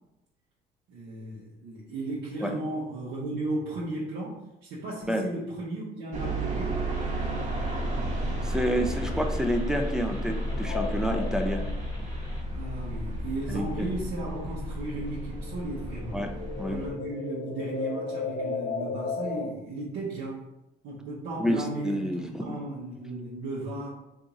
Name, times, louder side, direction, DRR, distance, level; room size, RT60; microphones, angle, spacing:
voice 1, 0.9-6.8 12.5-16.2 16.7-20.5 20.8-23.9, right 2 dB, 90° right, -7 dB, 0.8 m, -35 dB
sound 1, 6.1-16.9, right 1 dB, 45° right, 0.7 m, -32 dB
sound 2, 6.9-12.4, left 1 dB, 25° left, 1.2 m, -50 dB
voice 2, 8.4-11.6 13.5-13.9 16.1-16.8 21.4-22.5, equal, 5° right, 4 dB, 0.3 m, -29 dB
sound 3, 10.5-14.6 14.9-19.5, left 4 dB, 80° left, 0.5 m, -36 dB
2.9 x 2.5 x 3.7 m, 0.91 s
cardioid pair, 110°, 17 cm